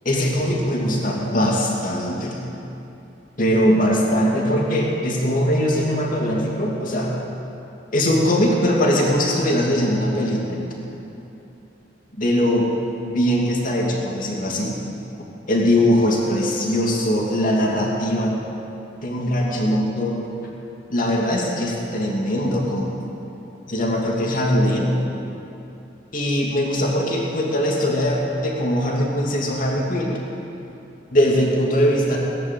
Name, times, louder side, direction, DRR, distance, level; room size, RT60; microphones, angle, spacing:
voice 1, 0.0-2.4 3.4-7.1 7.9-10.6 12.1-12.7 13.0-14.7 15.5-18.3 19.0-20.2 20.9-22.9 23.7-24.9 26.1-30.2 31.1-32.2, equal, 45° left, -2 dB, 2.7 m, -21 dB
18.0 x 10.5 x 7.7 m, 2.8 s
head